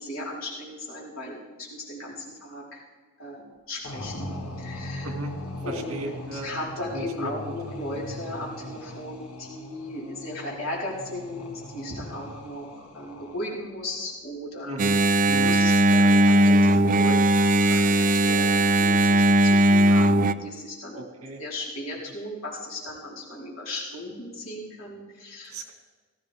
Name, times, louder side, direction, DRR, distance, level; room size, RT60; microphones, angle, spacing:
voice 1, 0.0-2.8 3.2-4.3 4.6-5.1 5.6-21.0 21.4-25.6, left 1 dB, 65° left, -6 dB, 4.8 m, -36 dB
sound 1, 3.8-13.7, left 1 dB, 90° left, 1.9 m, -40 dB
voice 2, 5.7-6.5 6.9-7.3 14.6-15.0 15.2-15.6 20.9-21.4 25.5-25.7, right 1 dB, 75° right, 3 dB, 2.2 m, -35 dB
Engine, 14.8-20.3, right 1 dB, 40° right, 0.4 m, -19 dB
19.0 x 15.0 x 3.7 m, 1.4 s
head